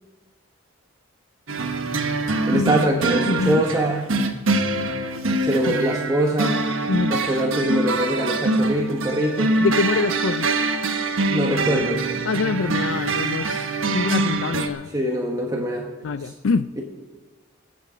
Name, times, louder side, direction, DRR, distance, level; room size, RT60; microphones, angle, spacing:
sound 1, 1.5-14.7, right 3 dB, 85° right, 1.2 m, -24 dB
voice 1, 2.5-4.1 5.4-6.6 7.1-9.5 11.3-12.0 14.9-15.9, equal, 20° right, 0 dB, 1.2 m, -23 dB
voice 2, 3.3-3.6 5.7-5.8 6.9-7.2 9.6-10.5 12.2-14.9 16.0-16.7, left 4 dB, 75° left, 12 dB, 0.4 m, -25 dB
21.0 x 8.4 x 5.1 m, 1.2 s
head